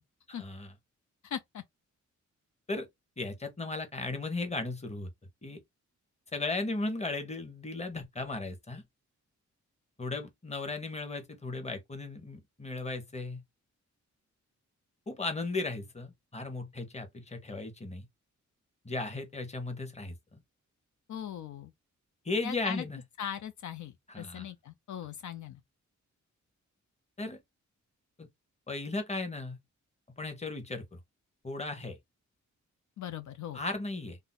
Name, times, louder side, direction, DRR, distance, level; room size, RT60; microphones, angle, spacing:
voice 1, 1.2-1.6 21.1-21.7 22.4-22.9 23.2-25.6 33.0-33.6, left 9 dB, 70° left, 0.5 m, -39 dB
voice 2, 3.2-5.1 5.4-5.6 6.3-8.8 10.0-13.4 15.1-18.0 18.8-20.4 22.2-23.0 24.1-24.5 27.2-27.4 28.2-28.3 28.7-29.6 30.2-31.0 31.4-32.0 33.5-34.2, left 3 dB, 20° left, 1.0 m, -36 dB
2.6 x 2.1 x 3.9 m
cardioid pair, 90°, 30 cm